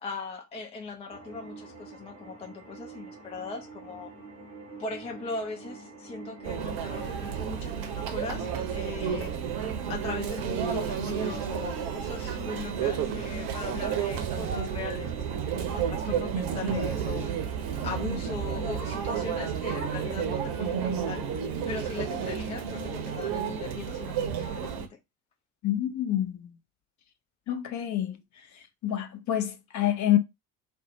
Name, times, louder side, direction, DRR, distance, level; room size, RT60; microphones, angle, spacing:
voice 1, 0.0-4.1 4.8-9.3 9.9-17.3 17.8-21.3 21.7-25.0, left 4 dB, 15° left, 0.3 m, -39 dB
sound 1, 1.1-20.2, right 3 dB, 80° right, 0.8 m, -46 dB
Conversation / Chatter / Crowd, 6.4-24.9, right 7 dB, 45° right, 0.8 m, -31 dB
voice 2, 25.6-26.5 27.5-28.1 28.8-30.2, left 12 dB, 35° left, 0.8 m, -27 dB
2.7 x 2.1 x 4.0 m
figure-of-eight pair, 60°, 47 cm